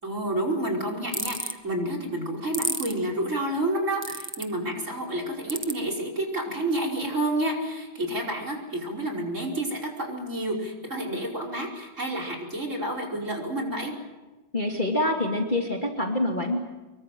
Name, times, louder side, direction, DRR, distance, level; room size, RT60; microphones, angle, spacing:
voice 1, 0.0-13.9, right 1 dB, 40° right, 3 dB, 5.6 m, -29 dB
sound 1, 1.1-1.5 2.5-2.9 4.0-4.4 5.5-5.7, right 1 dB, 10° right, 1.1 m, -29 dB
voice 2, 14.5-16.6, left 1 dB, 25° left, 1 dB, 2.6 m, -26 dB
25.5 x 23.5 x 7.7 m, 1.1 s
omnidirectional pair, 2.1 m